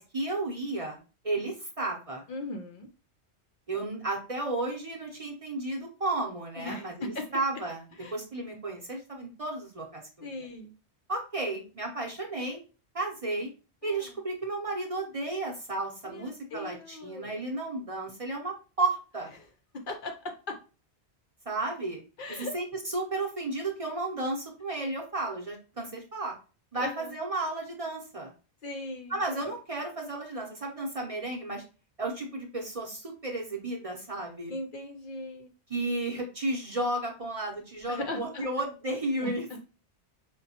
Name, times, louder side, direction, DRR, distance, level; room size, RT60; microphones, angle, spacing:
voice 1, 0.0-2.3 3.7-10.3 11.1-12.6 12.9-13.5 13.8-19.3 21.5-22.0 22.3-26.3 26.7-28.3 29.1-31.6 32.0-34.5 35.7-39.6, right 2 dB, 35° right, 0 dB, 0.7 m, -33 dB
voice 2, 2.3-2.9 6.6-7.2 8.0-8.2 10.2-10.7 13.8-14.2 16.1-17.4 19.7-20.6 22.2-22.5 26.7-27.1 28.6-29.5 34.5-35.5 37.9-38.5 39.2-39.6, left 2 dB, 60° left, 4 dB, 0.6 m, -38 dB
5.1 x 2.2 x 2.8 m, 0.34 s
omnidirectional pair, 1.1 m